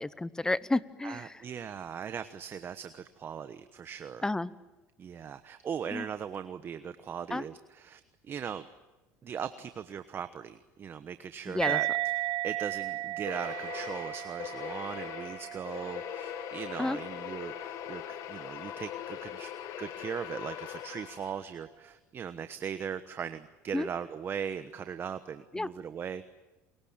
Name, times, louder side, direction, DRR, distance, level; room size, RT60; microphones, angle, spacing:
voice 1, 0.0-1.4 4.2-4.5 5.9-6.1 7.3-7.4 11.5-11.8 16.8-17.0 23.7-23.9 25.5-25.7, left 2 dB, 10° left, 18 dB, 0.9 m, -31 dB
voice 2, 1.0-4.2 5.0-8.7 9.2-11.9 12.1-19.5 19.8-26.2, right 7 dB, 40° right, 11 dB, 1.1 m, -39 dB
sound 1, 11.6-18.5, right 17 dB, 75° right, 1.1 m, -36 dB
sound 2, 13.2-21.5, left 12 dB, 65° left, 1.5 m, -41 dB
29.0 x 22.5 x 8.8 m, 1.1 s
supercardioid pair, 100°, 6 cm